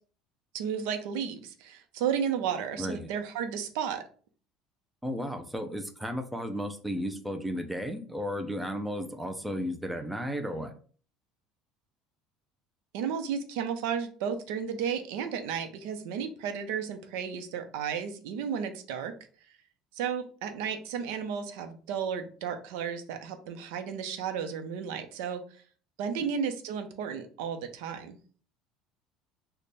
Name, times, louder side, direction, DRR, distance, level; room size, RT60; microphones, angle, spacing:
voice 1, 0.5-4.0 12.9-19.1 19.9-25.4 26.0-28.2, right 7 dB, 90° right, 7 dB, 0.5 m, -33 dB
voice 2, 2.8-3.1 5.0-10.7 26.2-26.3, equal, 5° right, 5 dB, 0.3 m, -34 dB
3.3 x 2.1 x 4.0 m, 0.41 s
cardioid pair, 175°, 0 cm